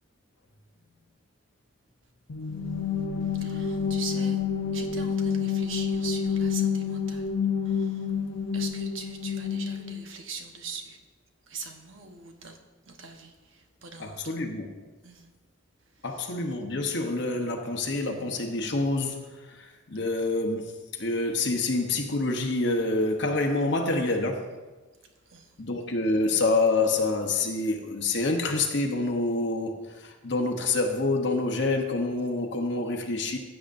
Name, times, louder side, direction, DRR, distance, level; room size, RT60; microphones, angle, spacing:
sound 1, 2.3-10.1, left 6 dB, 85° left, 0.7 m, -28 dB
voice 1, 3.4-4.4 4.7-7.3 7.6-8.1 8.5-11.0 11.5-12.6 12.9-14.3 15.0-15.3 25.3-25.5, right 5 dB, 70° right, 4 dB, 1.1 m, -41 dB
voice 2, 14.0-14.8 16.0-24.5 25.6-33.4, left 2 dB, 55° left, 3 dB, 0.9 m, -27 dB
15.5 x 7.9 x 2.6 m, 1.2 s
head